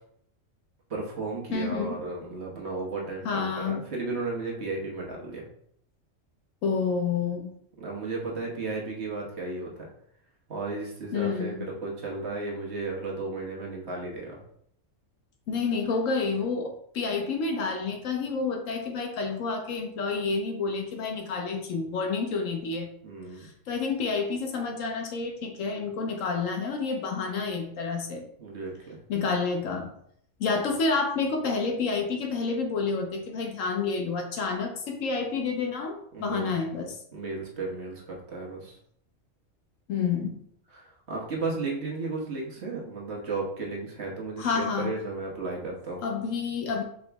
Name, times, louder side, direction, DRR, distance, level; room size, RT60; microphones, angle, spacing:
voice 1, 0.9-5.4 7.8-9.7 10.5-14.4 23.0-23.5 28.4-29.0 36.1-36.6 37.1-38.7 40.7-46.0, right 3 dB, 55° right, -2 dB, 1.3 m, -34 dB
voice 2, 1.5-1.9 3.2-3.9 6.6-7.5 11.1-11.7 15.5-22.9 23.4-28.2 29.1-29.9 30.4-36.9 39.9-40.4 44.4-45.0 46.0-46.8, left 4 dB, 80° left, 4 dB, 1.1 m, -29 dB
4.8 x 2.9 x 3.4 m, 0.67 s
omnidirectional pair, 1.4 m